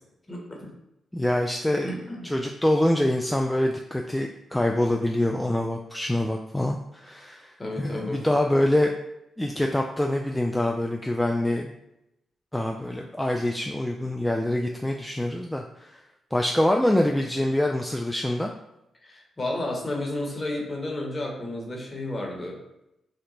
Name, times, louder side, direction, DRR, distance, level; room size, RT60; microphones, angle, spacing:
voice 1, 0.3-0.7 1.8-2.4 7.6-8.2 19.0-22.6, left 1 dB, 30° left, -1 dB, 1.0 m, -32 dB
voice 2, 1.1-8.9 9.4-11.7 12.5-16.0 16.3-18.5, left 1 dB, 10° left, 1 dB, 0.3 m, -25 dB
2.9 x 2.1 x 3.9 m, 0.87 s
supercardioid pair, 45°, 0 cm